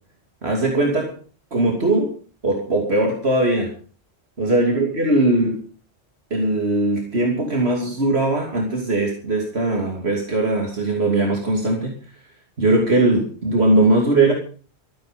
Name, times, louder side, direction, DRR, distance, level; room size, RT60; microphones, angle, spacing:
voice 1, 0.4-1.2 1.5-2.1 2.4-3.7 4.4-5.6 6.3-11.9 12.6-14.3, right 2 dB, 75° right, 0 dB, 3.2 m, -20 dB
15.0 x 14.0 x 5.3 m, 0.40 s
omnidirectional pair, 1.1 m